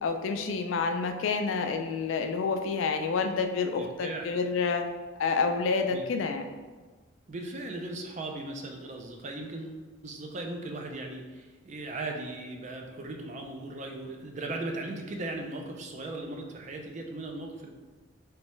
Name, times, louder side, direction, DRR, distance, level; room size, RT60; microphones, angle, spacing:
voice 1, 0.0-4.8 5.2-6.5, left 4 dB, 75° left, 6 dB, 0.3 m, -28 dB
voice 2, 3.8-4.3 5.9-6.0 7.3-17.7, right 2 dB, 35° right, 2 dB, 0.4 m, -38 dB
3.2 x 3.1 x 3.0 m, 1.3 s
head